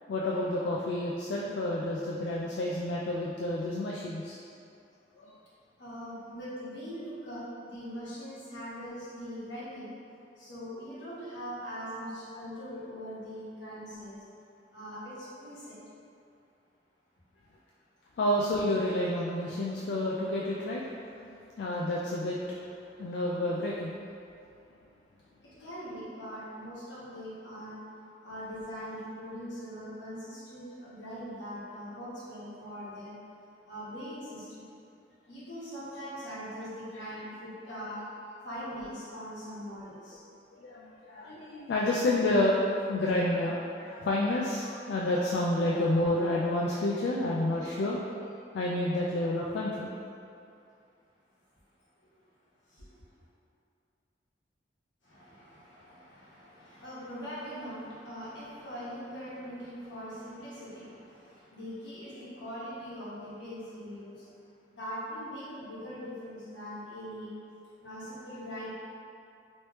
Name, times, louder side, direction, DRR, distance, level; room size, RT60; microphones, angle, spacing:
voice 1, 0.1-4.4 5.2-5.4 18.2-20.8 21.1-22.4 23.0-24.0 40.5-49.9, left 1 dB, 65° left, -4 dB, 0.3 m, -29 dB
voice 2, 5.8-9.9 10.4-14.2 14.7-15.8 25.6-27.8 28.2-33.2 33.6-34.7 35.3-40.2 47.5-47.7 52.7-52.9 55.0-64.2 64.7-67.3 67.8-68.7, equal, 85° left, -10 dB, 1.2 m, -41 dB
3.1 x 3.0 x 3.1 m, 2.5 s
head